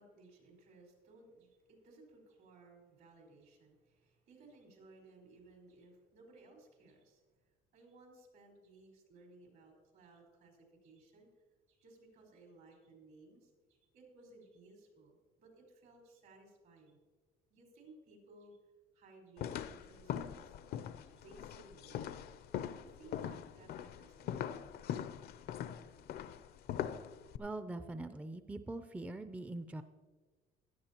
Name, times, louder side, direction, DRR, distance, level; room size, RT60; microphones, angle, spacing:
voice 1, 0.0-7.3 7.7-11.3 11.7-17.0 17.5-18.6 18.9-20.5 21.0-22.2 22.7-24.5 25.4-25.5 26.2-26.4, right 2 dB, 70° right, 0 dB, 4.6 m, -60 dB
sound 1, 19.4-27.4, left 10 dB, 65° left, 0.5 m, -42 dB
voice 2, 27.4-29.8, right 2 dB, 10° right, 10 dB, 0.4 m, -43 dB
16.5 x 12.0 x 2.9 m, 1.4 s
cardioid pair, 110°, 17 cm